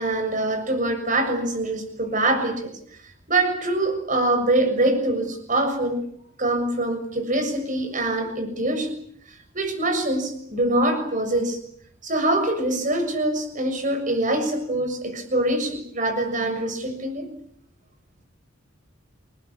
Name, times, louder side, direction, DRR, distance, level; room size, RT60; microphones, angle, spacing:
voice 1, 0.0-2.7 3.3-6.0 6.4-8.9 9.3-11.6 12.0-17.3, right 1 dB, 40° right, 8 dB, 6.8 m, -24 dB
28.5 x 21.0 x 8.5 m, 0.65 s
head